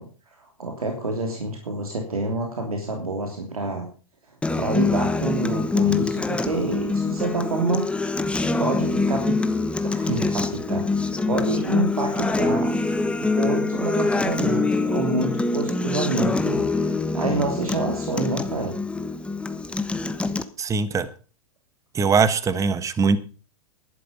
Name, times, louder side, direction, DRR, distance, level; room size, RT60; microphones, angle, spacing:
voice 1, 0.0-3.9 4.6-7.9 8.6-9.3 9.8-12.7 13.2-18.8, right 2 dB, 85° right, 3 dB, 3.2 m, -28 dB
Acoustic guitar, 4.4-20.4, left 3 dB, 5° left, 1.1 m, -24 dB
voice 2, 20.6-21.1 21.9-23.2, right 5 dB, 15° right, 15 dB, 1.2 m, -21 dB
12.0 x 11.5 x 5.5 m, 0.37 s
hypercardioid pair, 110°, 18 cm